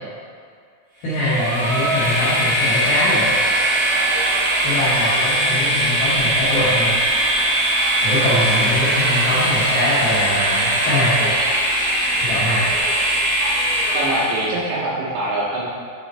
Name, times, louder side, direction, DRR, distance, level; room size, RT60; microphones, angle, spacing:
voice 1, 1.0-3.3 4.6-7.0 8.0-11.3 12.2-12.7, left 1 dB, 85° left, -9 dB, 2.0 m, -22 dB
Train, 1.1-14.5, right 1 dB, 75° right, 1.5 m, -20 dB
voice 2, 13.9-15.6, right 1 dB, 90° right, -7 dB, 2.4 m, -24 dB
8.3 x 3.3 x 4.2 m, 2.2 s
omnidirectional pair, 5.9 m